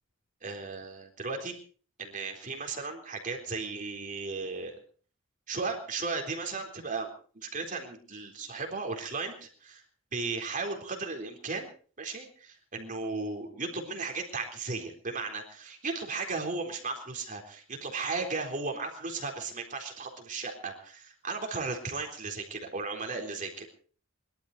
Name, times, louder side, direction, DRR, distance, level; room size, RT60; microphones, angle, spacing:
voice 1, 0.4-1.6 2.0-4.8 5.5-9.8 10.1-11.7 12.0-23.7, right 4 dB, 40° right, 3 dB, 3.9 m, -35 dB
22.5 x 12.5 x 4.9 m, 0.42 s
head